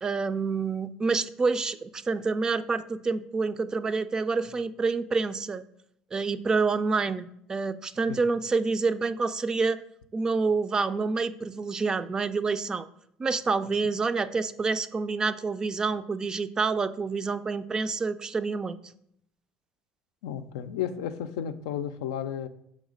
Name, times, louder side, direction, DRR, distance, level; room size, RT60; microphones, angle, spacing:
voice 1, 0.0-5.6 6.1-9.8 10.1-12.9 13.2-18.8, right 4 dB, 25° right, 13 dB, 0.3 m, -28 dB
voice 2, 20.2-22.5, left 9 dB, 90° left, 9 dB, 0.4 m, -33 dB
6.4 x 3.2 x 5.0 m, 0.73 s
supercardioid pair, 85°, 3 cm